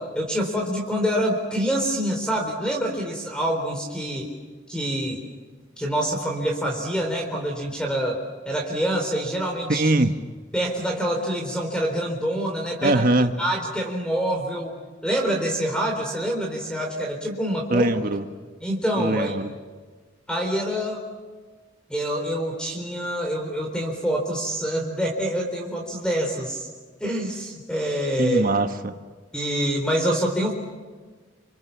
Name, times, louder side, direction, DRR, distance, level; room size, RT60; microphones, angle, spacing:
voice 1, 0.0-4.3 4.7-5.2 5.8-9.9 10.5-13.0 13.4-14.7 15.0-17.9 18.6-19.3 20.3-21.0 21.9-26.7 27.0-28.5 29.3-30.5, equal, 5° left, 1 dB, 4.0 m, -26 dB
voice 2, 9.7-10.1 12.8-13.3 17.7-18.2 19.0-19.5 28.2-29.0, right 2 dB, 45° right, 8 dB, 1.3 m, -22 dB
29.0 x 27.5 x 7.2 m, 1.4 s
head